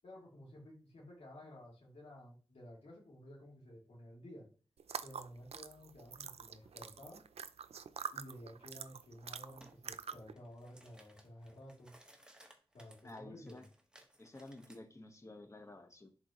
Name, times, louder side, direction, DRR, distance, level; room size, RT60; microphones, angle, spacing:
voice 1, 0.0-4.5 5.0-7.2 8.1-12.0 12.7-13.6, equal, 90° left, -4 dB, 2.9 m, -53 dB
sound 1, 4.8-10.3, right 7 dB, 85° right, 0.4 m, -46 dB
sound 2, 9.6-9.8 10.2-14.8, right 1 dB, 10° right, 1.3 m, -62 dB
voice 2, 13.0-13.6 14.2-16.1, left 2 dB, 30° left, 5 dB, 1.3 m, -52 dB
10.5 x 4.2 x 3.0 m, 0.37 s
wide cardioid pair, 90°, 10 cm